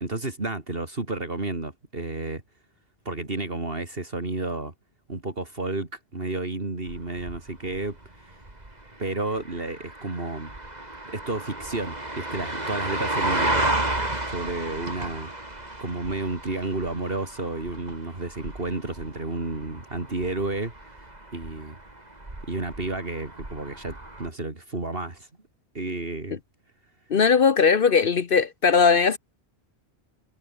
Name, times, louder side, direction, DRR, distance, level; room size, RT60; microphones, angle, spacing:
voice 1, 0.0-2.4 3.0-4.7 5.1-8.4 9.0-10.5 11.1-13.7 14.2-15.3 15.8-21.8 22.5-25.3 25.7-26.4, right 2 dB, 60° right, 3.4 m, -31 dB
sound 1, 6.9-24.3, right 2 dB, 40° right, 3.9 m, -33 dB
voice 2, 27.1-29.2, left 5 dB, 60° left, 1.1 m, -19 dB
omnidirectional pair, 1.1 m